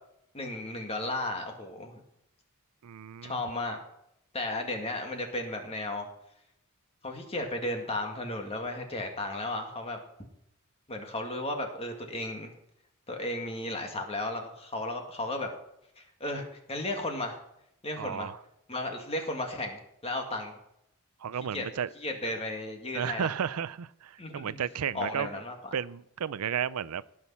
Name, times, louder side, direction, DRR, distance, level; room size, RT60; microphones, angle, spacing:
voice 1, 0.3-2.0 3.2-3.8 4.3-6.1 7.0-10.0 10.9-12.5 13.1-15.5 16.0-17.4 17.8-18.3 18.7-20.5 21.5-21.7 22.0-23.3 24.2-24.6 24.9-25.5, left 2 dB, 25° left, 2.0 m, -34 dB
voice 2, 2.8-3.4 18.0-18.4 21.2-21.9 22.2-22.3 22.9-25.3 25.7-27.0, right 8 dB, 80° right, 0.5 m, -33 dB
18.0 x 6.4 x 5.6 m
head